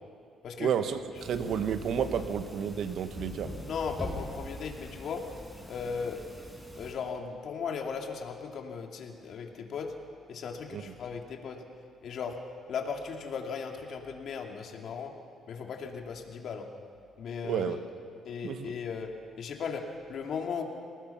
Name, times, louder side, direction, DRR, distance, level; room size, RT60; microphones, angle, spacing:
voice 1, 0.6-3.5 10.7-10.8 17.4-17.8 18.4-18.7, right 8 dB, 70° right, 9 dB, 1.3 m, -31 dB
sound 1, 1.1-6.9, equal, ahead, 6.4 m, -43 dB
voice 2, 3.6-5.2 5.7-6.2 6.7-9.9 10.3-11.6 12.0-12.4 12.7-15.1 15.5-16.7 17.2-17.7 18.2-19.1 19.4-20.6, left 6 dB, 65° left, 2 dB, 2.6 m, -37 dB
27.5 x 19.0 x 5.9 m, 2.3 s
cardioid pair, 90°, 0 cm